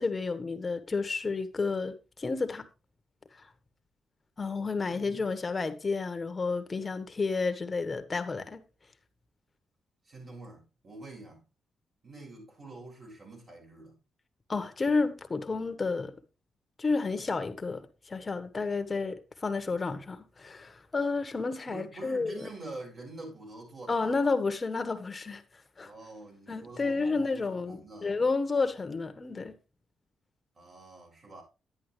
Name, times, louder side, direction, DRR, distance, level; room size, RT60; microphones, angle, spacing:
voice 1, 0.0-2.6 4.4-8.6 14.5-16.1 16.8-17.8 18.1-22.5 23.9-25.4 25.8-25.9 26.5-29.5, left 4 dB, 30° left, 1.5 m, -31 dB
voice 2, 4.9-5.2 10.1-11.4 12.0-14.0 21.7-24.1 25.8-28.2 30.6-31.4, right 2 dB, 45° right, 7.3 m, -46 dB
10.5 x 10.5 x 3.4 m
cardioid pair, 95°, 0 cm